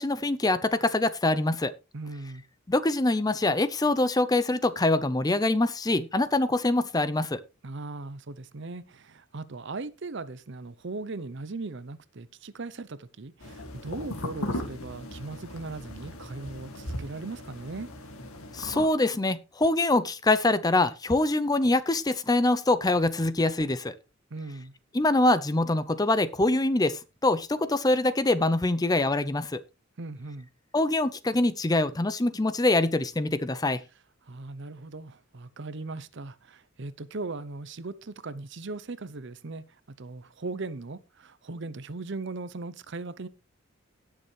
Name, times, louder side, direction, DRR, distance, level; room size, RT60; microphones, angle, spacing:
voice 1, 0.0-1.7 2.7-7.4 18.5-23.9 24.9-29.6 30.7-33.8, left 2 dB, 15° left, 0.5 m, -24 dB
voice 2, 1.9-2.4 7.6-17.9 24.3-24.7 30.0-30.5 34.2-43.3, right 3 dB, 55° right, 0.7 m, -38 dB
sound 1, 13.4-18.9, left 1 dB, 80° left, 2.3 m, -38 dB
17.5 x 6.8 x 3.2 m
head